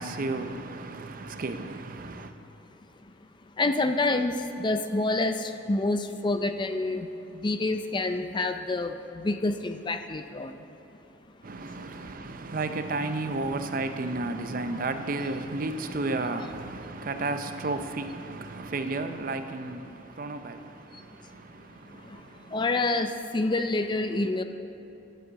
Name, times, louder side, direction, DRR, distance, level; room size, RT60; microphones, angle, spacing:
voice 1, 0.0-2.3 11.4-22.6, right 2 dB, 45° right, 0.5 m, -33 dB
voice 2, 3.6-10.7 20.9-21.0 21.9-24.4, left 2 dB, 25° left, 0.4 m, -28 dB
10.0 x 7.4 x 8.0 m
head